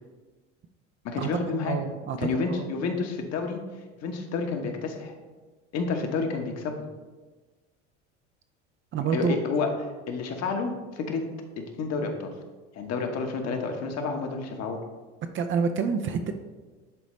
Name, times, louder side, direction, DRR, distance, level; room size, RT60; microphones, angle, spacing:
voice 1, 1.0-1.8 2.2-3.6 4.0-5.1 5.7-6.7 9.1-11.2 11.6-12.3 12.7-14.8, left 4 dB, 45° left, 4 dB, 1.2 m, -30 dB
voice 2, 1.6-2.3 2.6-2.7 8.9-9.4 15.3-16.3, right 6 dB, 35° right, 7 dB, 0.6 m, -27 dB
10.5 x 4.0 x 3.2 m, 1.3 s
hypercardioid pair, 75°, 36 cm